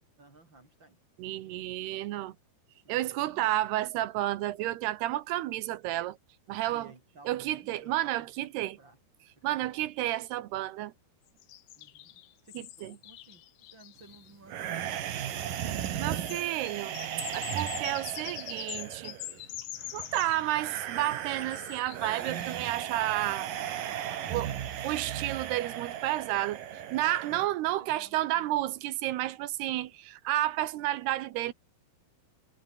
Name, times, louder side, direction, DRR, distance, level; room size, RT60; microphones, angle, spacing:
voice 1, 0.2-1.0 1.3-1.6 2.8-3.5 6.7-9.0 9.4-9.9 11.7-13.4 13.7-15.7 27.3-28.6, right 3 dB, 25° right, 5.0 m, -56 dB
voice 2, 1.2-2.3 2.9-6.2 6.5-6.9 7.3-8.8 9.4-10.9 12.8-13.0 16.0-17.0 17.3-19.1 19.9-23.5 24.3-24.5 24.8-26.6 26.9-31.5, right 15 dB, 80° right, 3.0 m, -31 dB
sound 1, 11.4-14.3 15.2-15.3 15.5-22.7 24.5-24.6 25.0-25.2, left 14 dB, 85° left, 3.5 m, -44 dB
sound 2, 14.5-27.5, right 10 dB, 60° right, 3.2 m, -36 dB
omnidirectional pair, 4.8 m